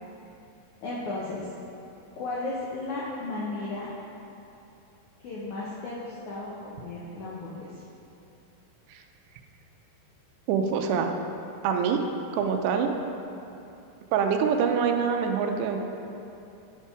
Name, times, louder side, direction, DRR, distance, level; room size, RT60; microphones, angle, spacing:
voice 1, 0.8-1.5 2.2-3.9 5.2-7.8, left 2 dB, 80° left, -6 dB, 1.7 m, -34 dB
voice 2, 10.5-11.1 11.6-12.0 12.3-12.9 14.1-15.8, right 6 dB, 85° right, 4 dB, 2.7 m, -25 dB
11.5 x 5.5 x 4.9 m, 2.8 s
omnidirectional pair, 4.9 m